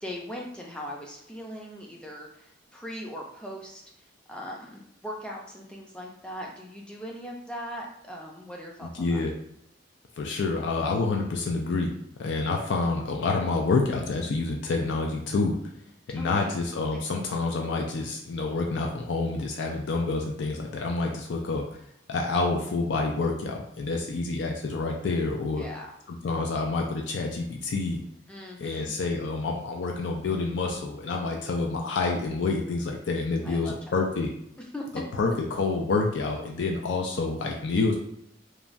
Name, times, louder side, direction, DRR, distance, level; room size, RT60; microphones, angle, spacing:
voice 1, 0.0-3.8 4.3-9.2 16.2-16.5 16.9-17.0 25.5-25.9 28.3-28.9 33.4-33.7 34.7-34.9, equal, 5° left, -2 dB, 0.4 m, -39 dB
voice 2, 8.8-9.4 10.2-11.9 12.2-15.6 16.1-21.8 22.1-25.7 26.1-28.0 28.6-34.3 35.1-38.0, left 3 dB, 70° left, 1 dB, 0.4 m, -28 dB
3.1 x 2.2 x 2.5 m, 0.76 s
head